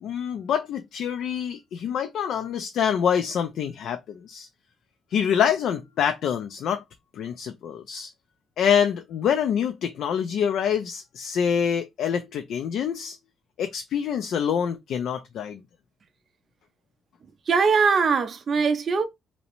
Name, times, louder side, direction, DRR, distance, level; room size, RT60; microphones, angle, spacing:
voice 1, 0.0-4.5 5.1-6.8 7.1-8.1 8.6-13.2 13.6-15.6, left 8 dB, 75° left, 0.3 m, -26 dB
voice 2, 17.5-19.0, right 5 dB, 45° right, 0.4 m, -21 dB
2.6 x 2.0 x 2.9 m
cardioid pair, 90°, 0 cm